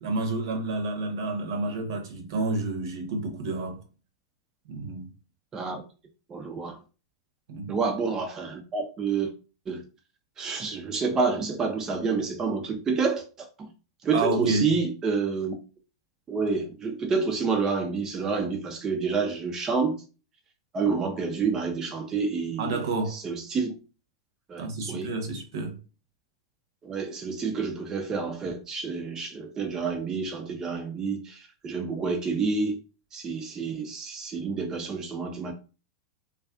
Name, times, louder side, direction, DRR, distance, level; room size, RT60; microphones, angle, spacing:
voice 1, 0.0-3.8 4.7-5.1 7.5-7.7 14.1-14.7 22.6-23.2 24.6-25.8, right 3 dB, 60° right, 0.7 m, -29 dB
voice 2, 5.5-5.8 6.3-6.8 7.7-9.3 9.7-9.8 10.4-13.7 14.0-15.5 16.3-20.0 20.7-23.7 24.5-25.1 26.8-32.8 33.1-35.5, right 4 dB, 25° right, 0.4 m, -29 dB
2.4 x 2.3 x 2.3 m
hypercardioid pair, 100°, 3 cm